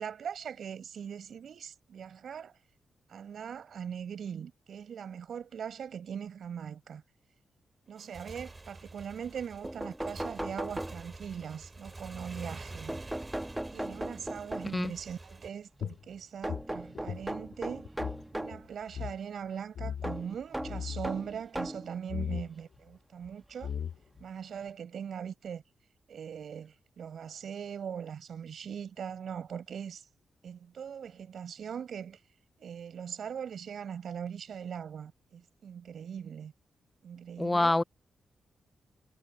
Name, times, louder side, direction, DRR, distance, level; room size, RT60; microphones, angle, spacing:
voice 1, 0.0-2.5 3.1-7.0 7.9-13.0 13.7-17.9 18.3-23.7 24.2-25.6 26.1-30.1 30.4-32.2 32.6-36.5 37.0-37.8, right 7 dB, 70° right, 6.7 m, -41 dB
Motorcycle / Engine, 7.9-15.5, right 2 dB, 25° right, 3.1 m, -47 dB
sound 1, 9.3-9.4 9.6-11.4 12.9-14.9 16.4-18.6 20.0-21.9 22.8-22.9 24.2-24.3 24.6-24.7, right 1 dB, 10° right, 1.1 m, -38 dB
sound 2, 15.8-18.2 18.5-18.6 18.9-19.2 19.7-20.2 20.6-21.1 22.1-22.5 23.2-23.3 23.6-24.2, left 8 dB, 80° left, 1.6 m, -37 dB
voice 2, 37.4-37.8, left 2 dB, 20° left, 0.3 m, -26 dB
cardioid pair, 75°, 0 cm